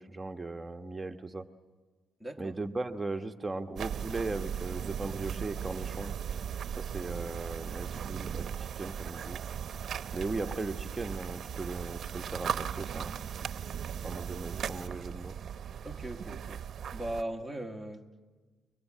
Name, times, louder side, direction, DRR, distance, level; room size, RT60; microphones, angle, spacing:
voice 1, 0.0-1.5 2.4-6.1 6.7-9.4 10.1-13.1 14.0-15.4, right 3 dB, 20° right, 6 dB, 1.3 m, -38 dB
voice 2, 2.2-2.6 15.8-16.6 16.9-18.1, right 1 dB, 5° left, 6 dB, 2.0 m, -38 dB
sound 1, 3.8-17.2, right 8 dB, 60° right, 0.8 m, -37 dB
29.0 x 23.5 x 7.6 m, 1.4 s
cardioid pair, 90°, 0 cm